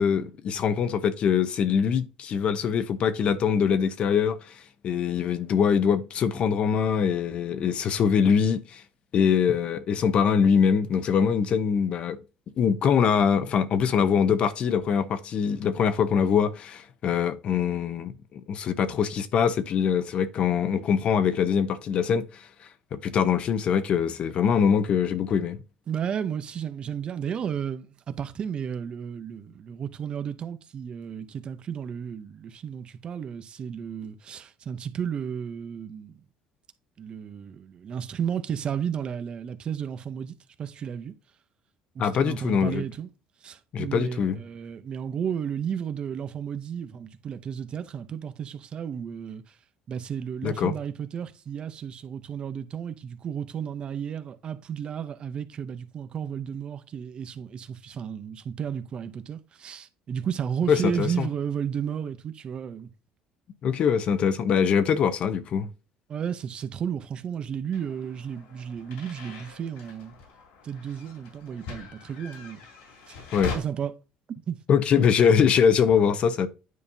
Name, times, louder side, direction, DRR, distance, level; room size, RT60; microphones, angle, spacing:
voice 1, 0.0-4.4 4.8-8.8 9.1-12.2 12.6-22.5 22.9-25.6 42.0-42.8 43.7-44.4 50.4-50.7 60.7-61.3 63.6-65.7 73.3-73.6 74.7-76.5, left 7 dB, 50° left, 0.8 m, -23 dB
voice 2, 25.9-36.2 37.0-41.1 41.9-43.1 43.4-49.5 49.9-62.9 66.1-70.1 70.6-72.6 73.1-73.2 73.5-73.9 74.5-74.6 75.0-75.1, right 8 dB, 45° right, 0.7 m, -33 dB
sound 1, 67.7-73.6, left 4 dB, 90° left, 2.8 m, -41 dB
9.5 x 5.1 x 2.8 m
cardioid pair, 110°, 2 cm